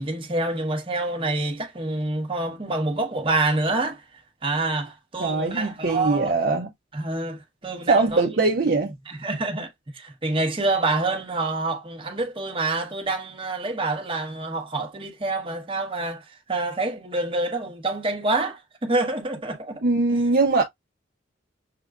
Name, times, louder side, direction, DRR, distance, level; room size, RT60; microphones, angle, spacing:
voice 1, 0.0-4.0 4.4-6.3 6.9-8.2 9.1-19.8, right 2 dB, 30° right, 1.1 m, -27 dB
voice 2, 5.2-6.7 7.9-8.9 19.8-20.6, right 3 dB, 55° right, 0.7 m, -21 dB
6.7 x 2.2 x 2.4 m
head